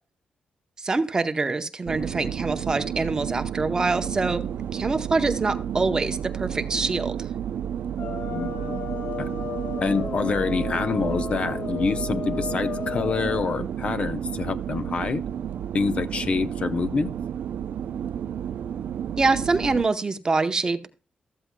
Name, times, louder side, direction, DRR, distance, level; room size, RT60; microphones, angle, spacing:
voice 1, 0.8-7.3 19.2-20.9, right 3 dB, 25° right, 8 dB, 0.7 m, -25 dB
sound 1, 1.9-19.8, right 9 dB, 85° right, 0.4 m, -31 dB
sound 2, 6.1-13.3, right 2 dB, 10° left, 1.7 m, -46 dB
sound 3, 8.0-13.6, left 6 dB, 75° left, 1.7 m, -34 dB
voice 2, 8.3-8.8 9.2-9.3 9.8-15.2 15.7-17.1, left 4 dB, 40° left, 11 dB, 0.7 m, -26 dB
14.0 x 13.5 x 2.2 m, 0.34 s
wide cardioid pair, 170°, 3 cm